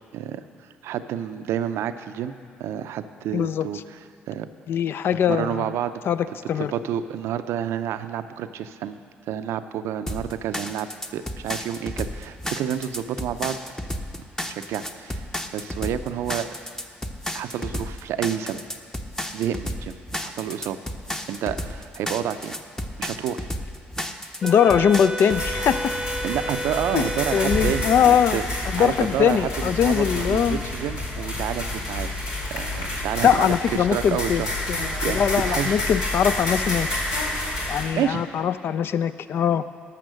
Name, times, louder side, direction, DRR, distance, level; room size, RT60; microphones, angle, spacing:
voice 1, 0.1-0.4 0.8-2.3 2.6-4.0 4.3-4.5 5.3-5.9 6.6-9.0 9.3-13.6 14.1-15.3 15.5-16.5 17.3-18.6 19.3-20.8 21.3-22.6 23.0-23.5 26.2-28.4 28.8-32.1 32.5-35.8 37.9-38.2, right 9 dB, 70° right, 11 dB, 0.5 m, -29 dB
voice 2, 3.3-3.7 4.7-5.7 6.1-6.7 24.4-25.8 26.9-28.4 28.7-30.6 33.2-34.4 34.7-36.9 37.7-39.6, left 8 dB, 55° left, 13 dB, 0.4 m, -21 dB
sound 1, 10.1-25.4, equal, 10° left, 0.8 m, -32 dB
Wind instrument woodwind instrument, 24.4-28.2, right 2 dB, 15° right, 0.6 m, -32 dB
sound 2, 25.3-37.8, left 1 dB, 80° left, 2.2 m, -29 dB
12.5 x 6.0 x 6.4 m, 2.2 s
hypercardioid pair, 55°, 5 cm